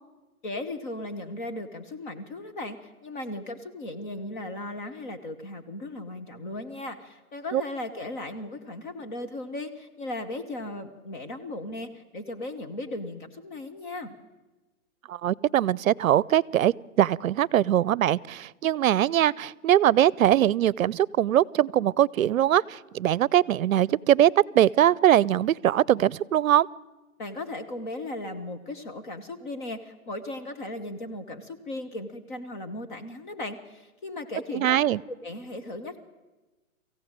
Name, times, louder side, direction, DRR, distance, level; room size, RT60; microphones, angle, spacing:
voice 1, 0.4-14.1 27.2-34.8 35.2-36.0, left 2 dB, 35° left, 7 dB, 1.3 m, -37 dB
voice 2, 15.1-26.7 34.5-35.0, right 11 dB, 65° right, 25 dB, 0.6 m, -22 dB
24.5 x 15.5 x 8.9 m, 1.1 s
hypercardioid pair, 165°, 44 cm